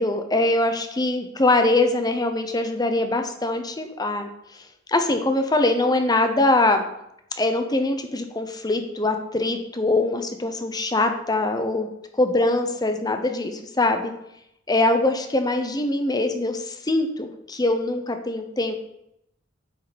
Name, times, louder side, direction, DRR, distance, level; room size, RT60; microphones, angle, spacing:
voice 1, 0.0-6.8 7.4-11.9 12.1-14.1 14.7-18.8, left 2 dB, 20° left, 6 dB, 0.8 m, -23 dB
8.8 x 6.4 x 5.1 m, 0.79 s
head